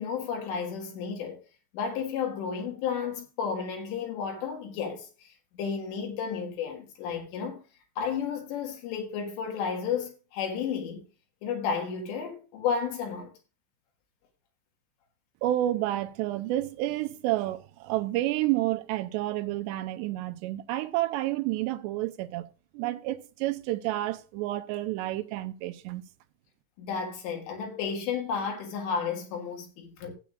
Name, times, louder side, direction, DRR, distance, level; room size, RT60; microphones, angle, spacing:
voice 1, 0.0-1.4 1.7-7.6 8.0-11.0 11.4-13.3 26.8-30.1, left 6 dB, 85° left, 3.9 m, -32 dB
voice 2, 15.4-26.0, right 15 dB, 90° right, 2.8 m, -30 dB
15.0 x 8.5 x 2.5 m
omnidirectional pair, 4.9 m